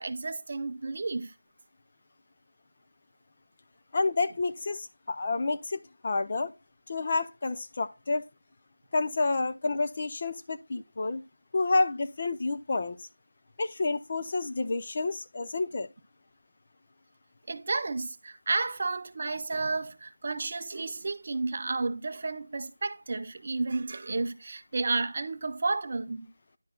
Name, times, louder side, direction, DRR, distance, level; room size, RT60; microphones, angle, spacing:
voice 1, 0.0-1.3 17.5-26.3, right 3 dB, 25° right, 0.5 m, -32 dB
voice 2, 3.9-6.5 6.9-8.3 8.9-11.2 11.5-13.1 13.6-15.9, left 3 dB, 20° left, 0.5 m, -29 dB
11.0 x 4.3 x 4.4 m
figure-of-eight pair, 180°, 0 cm